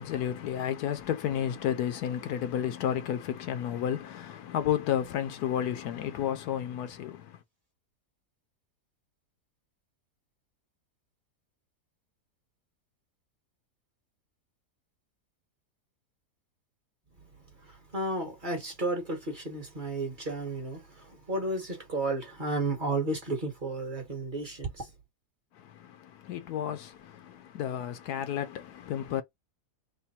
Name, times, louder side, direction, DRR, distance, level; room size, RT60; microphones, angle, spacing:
voice 1, 0.0-7.4 25.5-29.2, left 10 dB, 75° left, 1.1 m, -32 dB
voice 2, 17.6-24.9, right 2 dB, 35° right, 1.1 m, -33 dB
3.4 x 2.1 x 4.1 m
omnidirectional pair, 1.7 m